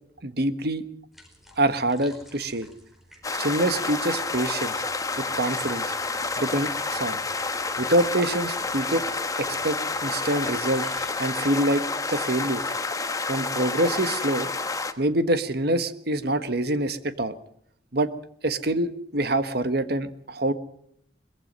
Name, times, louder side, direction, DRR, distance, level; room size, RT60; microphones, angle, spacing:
voice 1, 0.2-0.8 1.6-2.7 3.3-4.7 5.2-5.9 6.4-7.2 7.8-9.0 9.4-10.9 11.2-11.8 12.1-12.6 13.3-14.5 15.0-17.3 17.9-18.1 18.4-20.5, right 1 dB, 60° right, 11 dB, 1.5 m, -25 dB
sound 1, 1.1-11.1, equal, ahead, 4.7 m, -51 dB
sound 2, 3.2-14.9, left 3 dB, 20° left, 1.2 m, -29 dB
23.0 x 21.5 x 5.5 m, 0.69 s
head